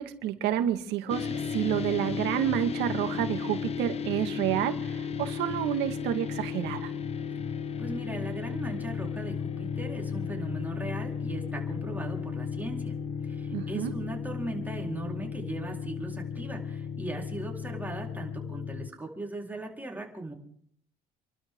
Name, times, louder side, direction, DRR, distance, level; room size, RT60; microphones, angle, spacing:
voice 1, 0.0-6.9 13.5-13.9, right 11 dB, 90° right, 7 dB, 2.0 m, -29 dB
sound 1, 1.1-18.9, left 6 dB, 40° left, 0.9 m, -34 dB
voice 2, 7.8-13.0 13.2-20.3, right 2 dB, 10° right, 0 dB, 4.5 m, -38 dB
29.0 x 12.5 x 3.9 m, 0.64 s
cardioid pair, 110°, 17 cm